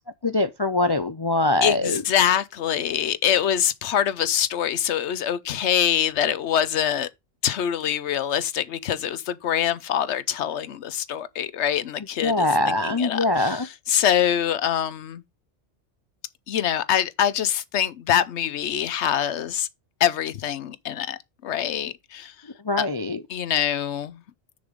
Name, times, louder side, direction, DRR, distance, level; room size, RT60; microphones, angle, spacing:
voice 1, 0.2-2.0 12.2-13.7 22.6-23.2, left 2 dB, 35° left, 0.4 m, -23 dB
voice 2, 1.6-7.1 7.4-13.6 13.9-15.2 16.5-19.7 20.0-22.3 22.8-22.9 23.3-24.2, left 9 dB, 75° left, 1.0 m, -24 dB
6.8 x 5.4 x 5.1 m
omnidirectional pair, 1.2 m